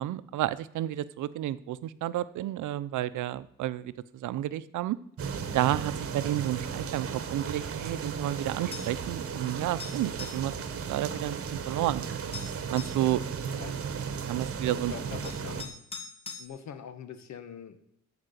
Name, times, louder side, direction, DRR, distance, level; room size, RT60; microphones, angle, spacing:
voice 1, 0.0-5.0 5.5-10.5 10.9-12.1 12.7-13.2 14.3-14.9, right 13 dB, 80° right, 15 dB, 0.7 m, -31 dB
sound 1, 5.2-15.6, right 6 dB, 50° right, 1.5 m, -35 dB
sound 2, 8.7-9.0 9.8-10.5 11.8-11.9 12.3-13.0 14.6-14.7 15.2-16.5, left 4 dB, 20° left, 2.0 m, -42 dB
voice 2, 14.9-15.8 16.4-17.9, left 8 dB, 65° left, 10 dB, 1.5 m, -43 dB
14.5 x 5.0 x 8.2 m, 0.70 s
cardioid pair, 90°, 30 cm